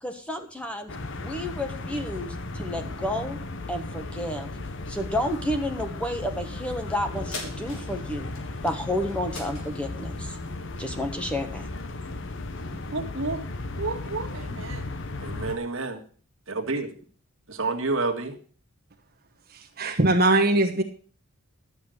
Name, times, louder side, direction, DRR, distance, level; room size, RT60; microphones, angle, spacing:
voice 1, 0.0-3.4 3.7-4.5 4.9-8.3 8.6-10.4 10.8-11.7, left 1 dB, 5° left, 5 dB, 1.4 m, -31 dB
sound 1, 0.9-15.6, left 2 dB, 60° left, 1.0 m, -35 dB
sound 2, 7.3-12.1 12.6-12.7, left 3 dB, 75° left, 4.0 m, -43 dB
voice 2, 12.9-13.4 13.8-14.9 15.2-16.0 16.5-16.9 17.5-18.4, right 3 dB, 65° right, 3 dB, 2.0 m, -30 dB
voice 3, 19.5-20.8, right 2 dB, 45° right, 3 dB, 1.3 m, -21 dB
12.5 x 8.0 x 6.6 m, 0.41 s
head